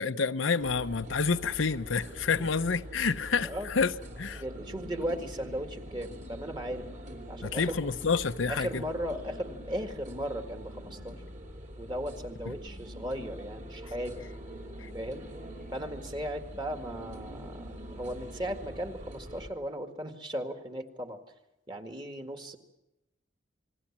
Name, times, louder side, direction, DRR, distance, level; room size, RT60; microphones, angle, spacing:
voice 1, 0.0-3.9 4.2-4.4 7.4-8.8 12.5-12.6, left 5 dB, 85° left, 0.8 m, -28 dB
sound 1, 0.6-19.5, equal, 40° right, 3.1 m, -44 dB
voice 2, 4.4-6.9 7.3-7.9 8.5-11.2 11.8-14.2 14.9-15.2 15.7-21.2 21.7-22.6, equal, 25° right, 1.9 m, -37 dB
29.0 x 20.5 x 7.4 m
head